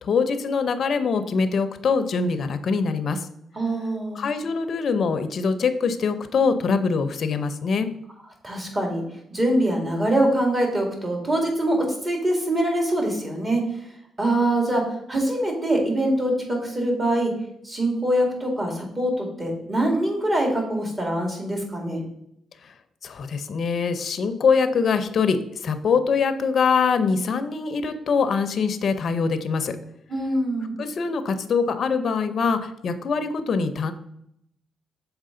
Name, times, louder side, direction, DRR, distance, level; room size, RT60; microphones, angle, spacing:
voice 1, 0.0-3.3 4.1-7.9 22.6-22.7 23.0-29.8 30.8-33.9, left 5 dB, 55° left, 9 dB, 0.6 m, -23 dB
voice 2, 3.6-4.2 8.4-9.0 9.3-13.6 14.2-14.8 15.1-17.3 17.6-22.0 30.1-30.7, right 1 dB, 25° right, 1 dB, 2.1 m, -24 dB
6.6 x 4.6 x 3.8 m, 0.75 s
cardioid pair, 95°, 0 cm